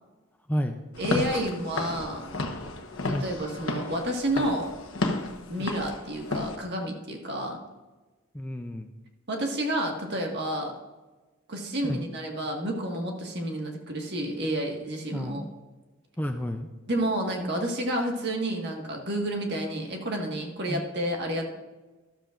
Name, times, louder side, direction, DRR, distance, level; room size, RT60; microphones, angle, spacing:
Walk footsteps / Siren, 0.9-6.6, left 2 dB, 65° left, 1.1 m, -32 dB
voice 1, 1.0-2.3 3.0-4.7 5.5-7.6 9.3-10.7 11.5-15.4 16.9-21.5, right 1 dB, 50° right, 1 dB, 1.7 m, -30 dB
voice 2, 8.3-8.9 11.8-12.0 15.1-15.5 16.2-16.7 20.7-20.8, equal, 10° left, 5 dB, 0.5 m, -31 dB
13.5 x 12.5 x 2.5 m, 1.2 s
head